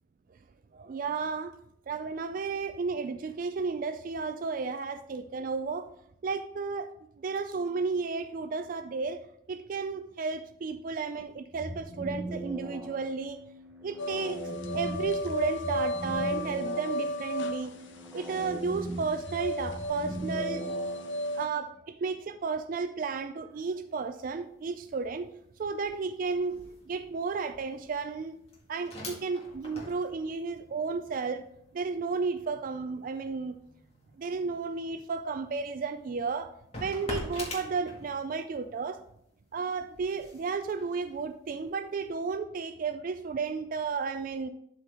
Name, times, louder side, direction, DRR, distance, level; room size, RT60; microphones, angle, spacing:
voice 1, 0.7-1.5 1.9-5.9 6.2-6.9 7.2-9.2 9.5-13.4 13.8-14.4 14.7-17.7 18.1-20.7 21.3-25.3 25.6-26.6 26.9-28.4 28.7-31.4 31.7-33.6 34.2-36.5 36.8-39.0 39.5-44.5, right 4 dB, 45° right, 10 dB, 0.3 m, -33 dB
sound 1, 11.5-21.5, right 1 dB, 10° right, 0.9 m, -40 dB
sound 2, 14.0-21.5, left 1 dB, 80° left, 0.8 m, -34 dB
sound 3, 23.5-23.8 24.1-38.5 38.9-42.0, left 1 dB, 35° left, 1.9 m, -46 dB
12.0 x 4.5 x 3.4 m, 0.73 s
head